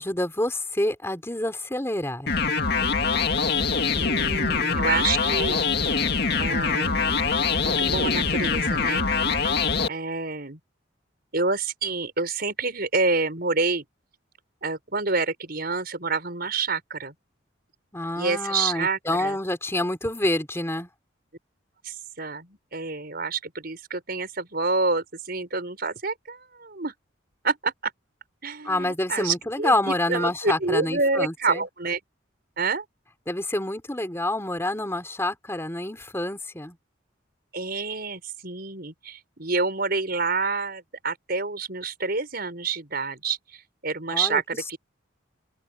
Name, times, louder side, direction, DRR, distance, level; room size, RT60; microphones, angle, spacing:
voice 1, 0.0-2.3 17.9-20.9 28.6-31.6 33.3-36.8 44.1-44.4, left 1 dB, 15° left, 3.5 m, -27 dB
sound 1, 2.3-9.9, left 5 dB, 55° left, 2.2 m, -24 dB
voice 2, 3.9-5.6 6.4-9.1 9.9-10.6 11.3-13.8 14.6-17.1 18.1-19.4 21.8-26.9 27.4-27.9 28.4-32.0 32.6-32.8 37.5-44.8, right 4 dB, 50° right, 5.9 m, -28 dB
open air
head